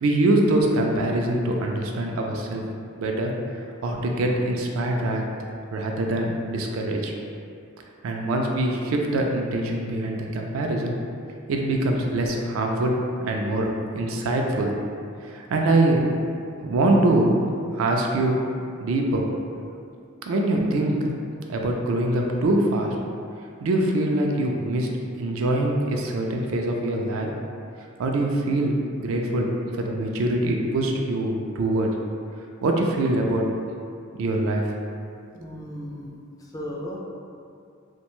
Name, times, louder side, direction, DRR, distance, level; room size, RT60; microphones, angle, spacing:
voice 1, 0.0-2.6 3.0-3.3 3.8-5.2 5.7-7.1 8.0-10.9 11.5-13.0 13.2-14.7 15.2-16.0 16.6-17.4 17.7-18.4 18.8-19.3 20.3-21.1 21.5-23.0 23.6-24.9 25.2-27.3 28.0-29.5 29.8-31.9 32.6-33.5 34.2-34.6, right 1 dB, 70° right, 1 dB, 0.3 m, -23 dB
voice 2, 35.3-37.0, equal, 20° left, -4 dB, 0.3 m, -36 dB
2.6 x 2.2 x 2.9 m, 2.4 s
head